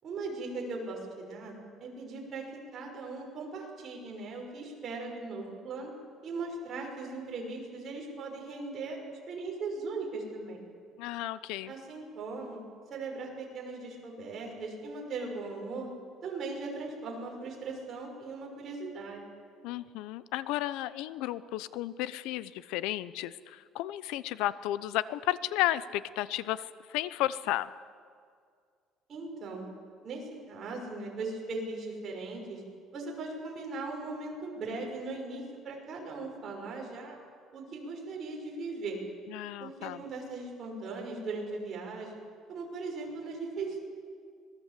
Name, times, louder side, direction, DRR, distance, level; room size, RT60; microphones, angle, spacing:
voice 1, 0.0-5.9 6.2-9.0 9.3-10.6 11.6-12.6 12.9-15.9 16.2-19.2 29.1-29.7 30.0-32.6 32.9-37.2 37.5-39.0 39.6-42.2 42.5-43.8, right 3 dB, 35° right, -1 dB, 5.9 m, -39 dB
voice 2, 11.0-11.7 19.6-27.7 39.3-40.0, left 14 dB, 90° left, 16 dB, 0.8 m, -33 dB
25.5 x 19.5 x 8.4 m, 2.1 s
cardioid pair, 160°, 0 cm